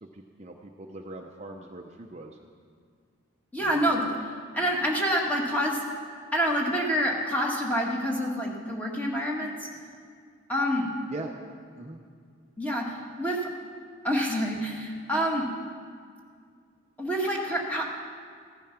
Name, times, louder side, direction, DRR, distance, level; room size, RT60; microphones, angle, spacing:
voice 1, 0.0-2.4 11.1-11.3 11.8-12.0, right 2 dB, 30° right, 1 dB, 0.7 m, -41 dB
voice 2, 3.5-4.2 4.5-5.8 6.3-9.7 10.5-10.9 12.6-13.5 14.0-15.5 17.0-18.0, equal, 5° left, -2 dB, 1.7 m, -27 dB
15.5 x 11.0 x 5.9 m, 2.1 s
head